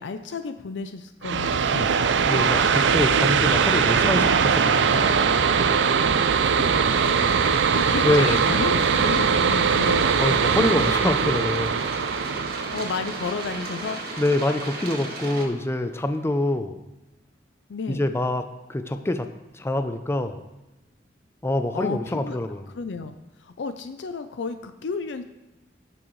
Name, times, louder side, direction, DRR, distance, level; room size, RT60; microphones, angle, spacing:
voice 1, 0.0-2.0 2.4-2.6 5.5-6.0 6.3-10.1 12.5-14.0 17.7-18.0 21.7-22.4 22.7-23.1 23.4-25.2, left 4 dB, 80° left, 9 dB, 0.5 m, -33 dB
sound 1, 1.2-14.6, right 6 dB, 85° right, 0.5 m, -21 dB
voice 2, 2.3-5.1 8.0-8.4 10.2-11.7 14.2-16.8 17.9-18.4 18.7-19.3 19.5-20.4 21.4-22.6, left 1 dB, 15° left, 8 dB, 0.4 m, -25 dB
sound 2, 6.9-15.5, right 2 dB, 60° right, 1.7 m, -35 dB
18.0 x 6.1 x 3.1 m, 0.98 s
head